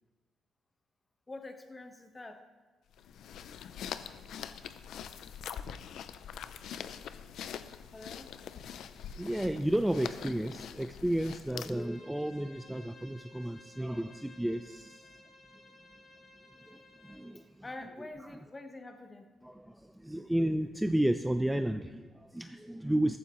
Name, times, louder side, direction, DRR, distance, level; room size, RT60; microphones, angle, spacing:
voice 1, 1.3-2.5 7.9-8.3 17.6-19.3, left 2 dB, 20° left, 7 dB, 1.2 m, -46 dB
sound 1, 2.9-11.9, left 8 dB, 75° left, 0.5 m, -44 dB
voice 2, 9.1-15.0 16.7-16.8 17.0-17.4 19.4-19.8 20.0-23.2, right 1 dB, 5° right, 8 dB, 0.5 m, -32 dB
Bowed string instrument, 11.7-17.3, left 2 dB, 45° left, 3.2 m, -56 dB
14.0 x 14.0 x 3.1 m, 1.3 s
cardioid pair, 90°, 0 cm